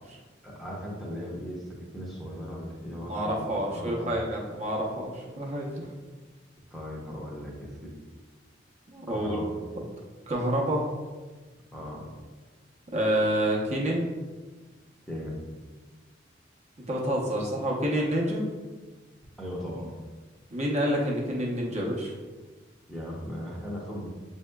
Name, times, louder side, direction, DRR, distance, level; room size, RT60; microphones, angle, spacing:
voice 1, 0.4-3.5 3.7-4.1 6.7-7.9 9.1-9.6 11.7-12.0 15.1-15.5 19.4-19.9 22.9-24.1, equal, ahead, -4 dB, 0.7 m, -37 dB
voice 2, 2.9-5.8 8.9-9.4 10.3-10.8 12.9-14.1 16.9-18.5 20.5-22.1, equal, 35° right, -2 dB, 0.7 m, -28 dB
7.2 x 2.7 x 2.2 m, 1.3 s
head